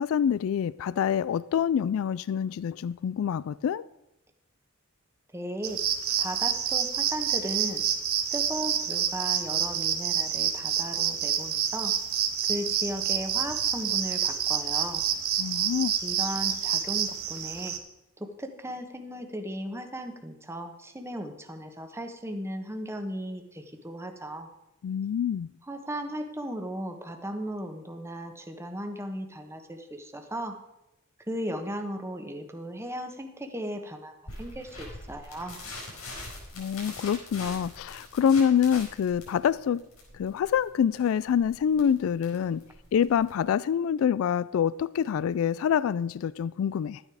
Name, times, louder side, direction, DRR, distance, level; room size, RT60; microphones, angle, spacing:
voice 1, 0.0-3.8 15.4-15.9 24.8-25.5 36.6-39.8 40.1-42.6 42.9-47.0, left 8 dB, 70° left, 0.3 m, -26 dB
voice 2, 5.3-5.8 6.2-7.8 8.3-11.9 12.5-15.0 16.0-17.7 18.2-24.5 25.7-30.5 31.3-35.6, equal, 10° right, 1.1 m, -36 dB
sound 1, 5.6-17.8, right 8 dB, 80° right, 1.4 m, -28 dB
sound 2, 34.3-43.4, left 2 dB, 85° left, 5.2 m, -43 dB
12.0 x 9.8 x 4.9 m
head